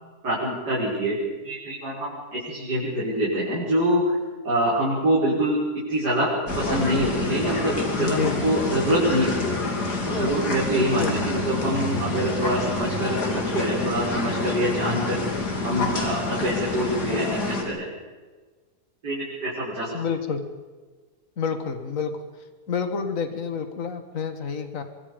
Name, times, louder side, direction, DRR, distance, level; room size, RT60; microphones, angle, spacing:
voice 1, 0.2-1.2 1.4-4.2 4.4-5.6 5.9-6.3 6.5-9.6 10.0-15.2 15.6-17.9 19.0-19.9, right 1 dB, 85° right, -8 dB, 6.6 m, -25 dB
sound 1, 6.5-17.6, left 3 dB, 75° left, 3.6 m, -27 dB
voice 2, 8.0-8.5 11.0-11.1 19.9-20.4 21.4-22.1 22.7-24.8, left 6 dB, 55° left, 8 dB, 2.2 m, -28 dB
25.0 x 24.0 x 5.3 m, 1.4 s
omnidirectional pair, 1.7 m